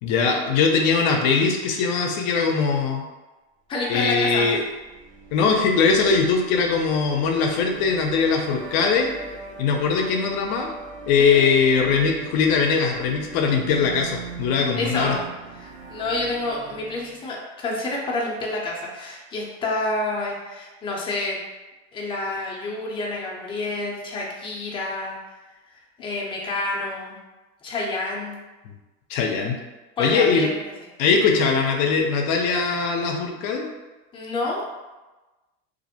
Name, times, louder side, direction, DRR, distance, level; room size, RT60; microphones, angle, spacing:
voice 1, 0.0-3.1 3.9-4.6 5.3-9.1 9.6-10.7 11.1-15.2 29.1-29.5 30.0-30.5 31.0-33.7, left 5 dB, 70° left, 2 dB, 0.5 m, -21 dB
voice 2, 3.7-4.6 11.2-11.4 14.7-15.2 15.5-21.4 21.9-25.2 26.0-27.2 27.6-28.4 30.0-30.7 34.1-34.6, left 2 dB, 15° left, -3 dB, 0.5 m, -28 dB
sound 1, 4.4-17.2, right 4 dB, 80° right, 0.8 m, -41 dB
2.5 x 2.0 x 2.7 m, 1.1 s
supercardioid pair, 120°, 33 cm